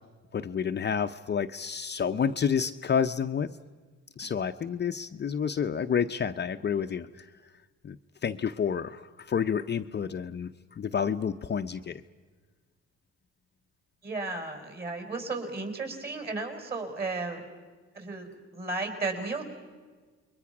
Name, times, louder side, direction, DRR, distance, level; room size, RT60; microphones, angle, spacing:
voice 1, 0.3-3.5 4.2-7.3 7.8-8.0 8.2-12.0, left 7 dB, 35° left, 7 dB, 0.6 m, -29 dB
voice 2, 14.0-17.4 17.9-19.4, right 3 dB, 30° right, 5 dB, 5.1 m, -34 dB
29.0 x 22.0 x 6.0 m, 1.4 s
cardioid pair, 90°, 30 cm